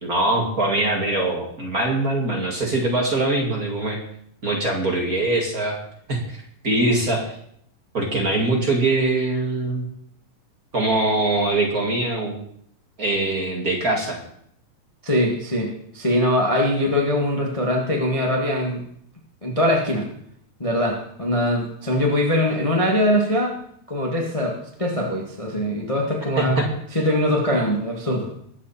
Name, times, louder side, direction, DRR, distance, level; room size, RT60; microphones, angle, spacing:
voice 1, 0.0-4.0 4.4-5.8 6.1-7.3 7.9-9.9 10.7-12.4 13.0-14.2 26.4-26.7, right 2 dB, 30° right, -1 dB, 2.1 m, -22 dB
voice 2, 15.0-18.8 19.4-20.1 20.6-23.6 23.9-26.6 26.9-28.3, left 1 dB, 15° left, -1 dB, 1.2 m, -22 dB
22.0 x 8.2 x 4.3 m, 0.69 s
omnidirectional pair, 4.0 m